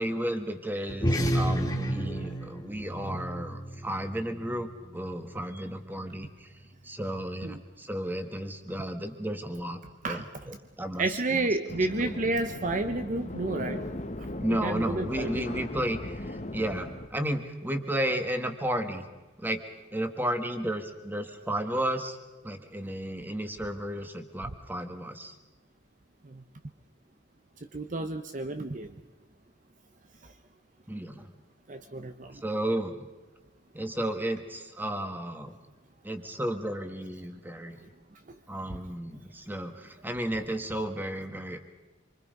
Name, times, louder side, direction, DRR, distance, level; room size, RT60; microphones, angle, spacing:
voice 1, 0.0-6.5 6.8-9.8 10.1-12.1 14.4-19.0 19.4-19.6 19.9-22.2 22.4-25.3 30.9-31.3 32.4-33.0 33.7-35.5 36.0-37.8 38.5-41.6, right 1 dB, 10° right, 7 dB, 1.6 m, -33 dB
sound 1, 0.9-5.7, equal, 20° left, 2.4 m, -31 dB
voice 2, 11.0-13.8 14.5-15.6 27.7-28.9 31.7-32.3, right 2 dB, 40° right, 8 dB, 0.8 m, -30 dB
sound 2, 11.7-17.1, left 1 dB, 35° left, 1.2 m, -38 dB
26.5 x 24.5 x 5.3 m, 1.2 s
head